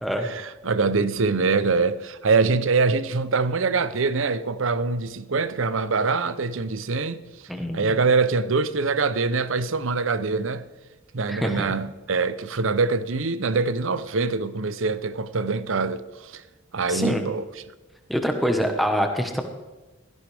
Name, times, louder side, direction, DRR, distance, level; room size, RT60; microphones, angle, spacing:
voice 1, 0.2-7.2 7.7-10.6 11.1-16.4 16.7-17.4, right 4 dB, 70° right, 0.7 m, -24 dB
voice 2, 7.5-7.9 11.3-11.6 16.9-17.2 18.1-19.4, equal, ahead, 1.3 m, -25 dB
16.5 x 14.0 x 3.5 m
head